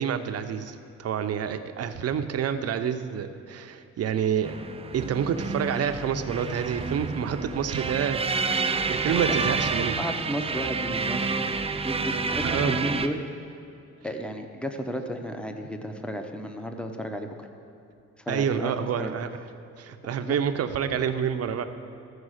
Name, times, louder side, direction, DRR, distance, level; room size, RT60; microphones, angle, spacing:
voice 1, 0.0-4.5 4.9-8.2 8.9-10.0 12.5-12.8 18.3-19.3 19.8-21.6, right 8 dB, 55° right, 8 dB, 0.7 m, -28 dB
sound 1, 4.4-13.1, right 4 dB, 20° right, 0.5 m, -29 dB
voice 2, 9.0-11.6 11.8-13.2 14.0-17.5 18.2-19.1 20.2-20.4, equal, 5° left, 5 dB, 0.8 m, -33 dB
14.0 x 4.8 x 6.4 m, 2.7 s
cardioid pair, 90°, 30 cm